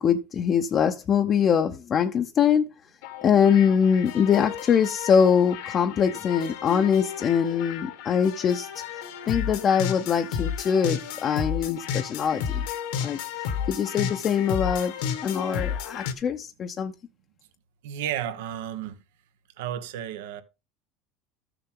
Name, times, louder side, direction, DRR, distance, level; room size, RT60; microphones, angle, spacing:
voice 1, 0.0-2.7 3.2-8.7 9.3-12.6 13.0-14.9 15.2-16.9, left 7 dB, 35° left, 0.7 m, -23 dB
sound 1, 3.0-16.1, left 8 dB, 75° left, 1.5 m, -33 dB
voice 2, 17.8-19.0 19.6-20.4, right 10 dB, 80° right, 1.2 m, -32 dB
13.0 x 6.9 x 3.7 m
supercardioid pair, 115°, 0 cm